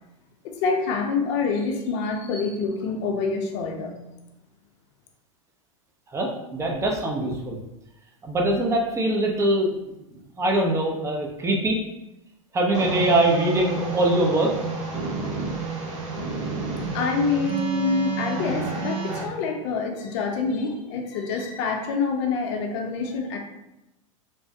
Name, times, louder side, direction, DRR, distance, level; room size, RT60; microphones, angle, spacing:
voice 1, 0.4-4.0 16.9-23.4, left 4 dB, 55° left, 2 dB, 0.6 m, -26 dB
voice 2, 6.1-7.6 8.2-9.9 10.4-11.8 12.5-14.5, right 1 dB, 15° right, 0 dB, 0.6 m, -23 dB
sound 1, 12.7-19.2, right 4 dB, 65° right, 0.7 m, -30 dB
3.2 x 2.0 x 2.7 m, 0.93 s
hypercardioid pair, 110°, 17 cm